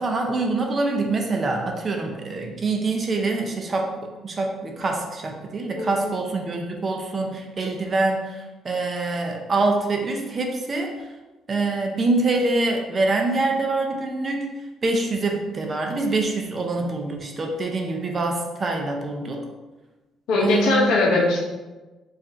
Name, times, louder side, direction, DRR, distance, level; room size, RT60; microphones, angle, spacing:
voice 1, 0.0-3.9 4.2-11.1 11.5-14.5 14.8-19.4 20.4-20.9, right 3 dB, 30° right, 2 dB, 0.5 m, -25 dB
voice 2, 5.8-6.1 20.3-21.4, left 3 dB, 80° left, -2 dB, 0.8 m, -20 dB
5.0 x 2.5 x 4.2 m, 1.2 s
cardioid pair, 155°, 0 cm